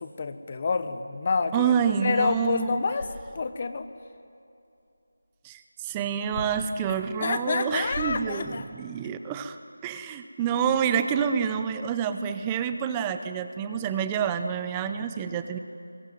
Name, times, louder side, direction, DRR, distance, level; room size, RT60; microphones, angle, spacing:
voice 1, 0.0-1.8 2.0-3.1 3.3-3.9 6.9-8.6, left 4 dB, 30° left, 11 dB, 1.2 m, -28 dB
voice 2, 1.5-2.8 5.4-15.6, right 7 dB, 10° right, 9 dB, 0.6 m, -28 dB
sound 1, 2.2-3.7 6.2-6.7 7.5-8.8, left 1 dB, 85° left, 7.6 m, -41 dB
22.5 x 22.0 x 9.3 m, 2.7 s
figure-of-eight pair, 175°, 0 cm